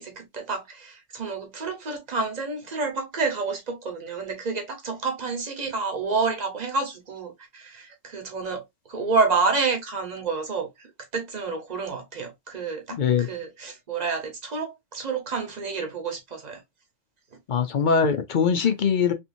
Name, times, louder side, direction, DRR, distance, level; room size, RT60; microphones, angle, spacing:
voice 1, 0.0-8.6 8.9-10.7 11.1-16.6, right 4 dB, 35° right, 1.1 m, -29 dB
voice 2, 13.0-13.3 17.5-19.1, left 6 dB, 50° left, 0.6 m, -22 dB
3.4 x 2.9 x 2.5 m
omnidirectional pair, 1.2 m